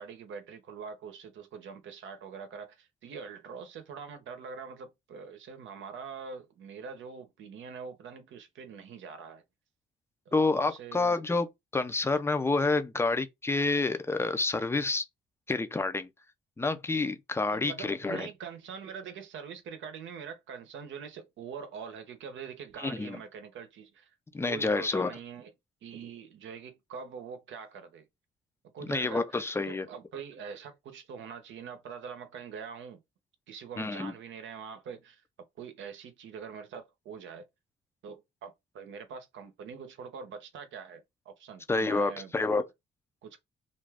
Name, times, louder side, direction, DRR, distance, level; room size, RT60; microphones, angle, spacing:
voice 1, 0.0-9.4 10.3-11.2 17.5-24.1 24.4-25.5 25.8-28.0 28.7-33.0 33.5-35.2 35.6-37.4 38.0-42.3 43.2-43.4, right 6 dB, 70° right, 0.8 m, -44 dB
voice 2, 10.3-11.5 11.7-15.0 15.5-16.1 16.6-18.3 22.8-23.2 24.3-25.1 28.8-29.9 33.8-34.1 41.7-42.6, left 3 dB, 10° left, 0.4 m, -28 dB
2.5 x 2.3 x 3.3 m
cardioid pair, 90°, 20 cm